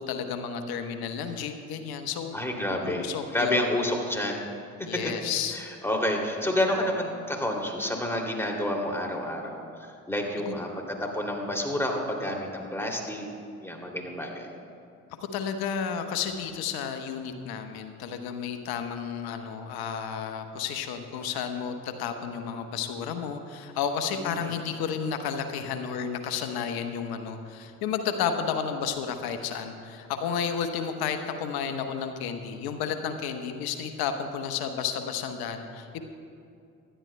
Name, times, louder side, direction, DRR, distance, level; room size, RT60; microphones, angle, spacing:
voice 1, 0.0-2.3 2.8-4.0 4.9-5.6 10.5-10.6 15.1-36.0, left 7 dB, 60° left, 7 dB, 1.1 m, -32 dB
voice 2, 2.3-3.1 3.3-4.4 5.5-13.3 13.6-14.5 24.2-24.5, left 1 dB, 5° left, 0 dB, 2.8 m, -29 dB
25.5 x 11.5 x 2.3 m, 2.5 s
figure-of-eight pair, 45°, 41 cm